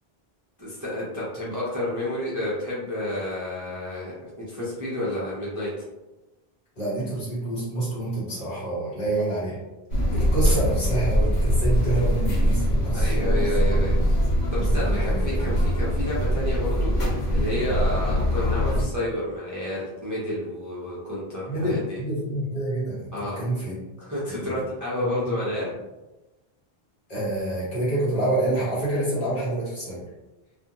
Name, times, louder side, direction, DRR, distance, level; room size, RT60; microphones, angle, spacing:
voice 1, 0.6-5.7 12.9-14.0 14.5-22.0 23.1-23.4 24.0-25.7, left 1 dB, 25° right, -8 dB, 0.5 m, -30 dB
voice 2, 6.8-9.6 10.1-13.9 14.5-15.6 21.5-23.7 24.4-24.5 25.0-25.4 27.1-30.0, right 1 dB, 50° left, -9 dB, 1.3 m, -28 dB
sound 1, 9.9-18.8, equal, 80° left, 1.1 m, -23 dB
2.4 x 2.3 x 2.8 m, 1.1 s
omnidirectional pair, 1.1 m